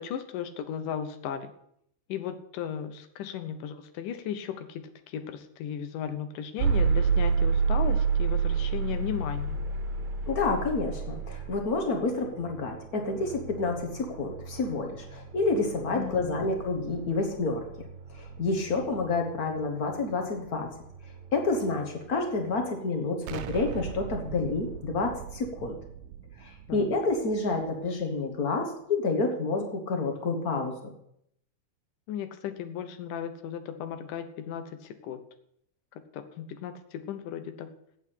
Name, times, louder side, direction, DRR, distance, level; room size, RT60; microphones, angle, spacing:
voice 1, 0.0-1.5 2.1-9.6 15.9-16.5 26.7-26.9 32.1-35.2 36.1-37.7, left 8 dB, 90° left, 10 dB, 2.6 m, -36 dB
sound 1, 6.6-22.5, right 5 dB, 70° right, 2.0 m, -31 dB
voice 2, 10.3-17.7 18.1-20.7 21.3-25.8 26.4-30.9, left 3 dB, 65° left, 4 dB, 0.9 m, -29 dB
Explosion, 23.3-28.1, right 9 dB, 85° right, 2.3 m, -41 dB
8.9 x 8.3 x 8.3 m, 0.73 s
omnidirectional pair, 3.7 m